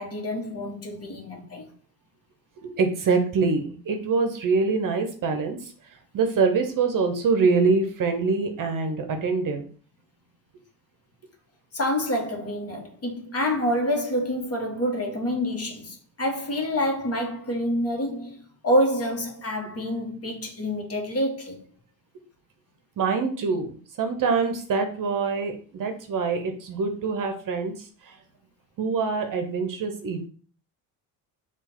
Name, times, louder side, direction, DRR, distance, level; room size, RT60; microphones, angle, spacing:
voice 1, 0.0-1.7 11.7-21.6, equal, 30° left, 1.3 m, -27 dB
voice 2, 2.6-5.7 6.1-9.6 23.0-27.7 28.0-28.1 28.8-30.3, right 4 dB, 45° right, 0.8 m, -25 dB
3.6 x 2.5 x 4.4 m
supercardioid pair, 75°, 45 cm